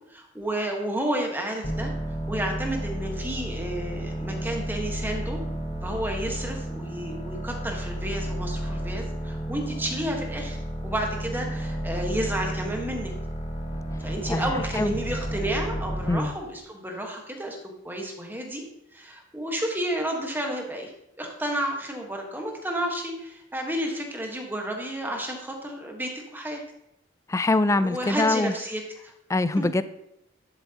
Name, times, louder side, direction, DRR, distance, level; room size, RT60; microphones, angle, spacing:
voice 1, 0.1-1.9 2.3-5.4 5.8-13.1 14.0-17.6 17.8-18.6 18.9-20.9 21.2-26.6 27.8-29.1 29.6-29.7, right 1 dB, 10° right, 1 dB, 1.4 m, -31 dB
sound 1, 1.6-16.4, right 1 dB, 35° left, 1.2 m, -32 dB
voice 2, 14.3-14.9 16.1-16.3 27.3-28.5 29.3-29.8, left 2 dB, 15° left, 13 dB, 0.3 m, -24 dB
11.5 x 7.7 x 2.9 m, 0.81 s
head